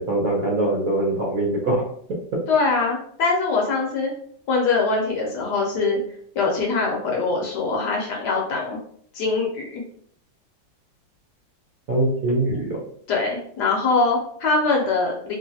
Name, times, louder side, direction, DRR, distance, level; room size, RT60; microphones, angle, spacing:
voice 1, 0.0-1.8 11.9-12.8, right 2 dB, 60° right, -3 dB, 1.0 m, -22 dB
voice 2, 2.5-4.1 4.5-6.0 6.3-8.8 9.1-9.8 13.1-15.4, left 3 dB, 70° left, -1 dB, 1.1 m, -23 dB
3.1 x 2.4 x 2.7 m, 0.62 s
omnidirectional pair, 2.1 m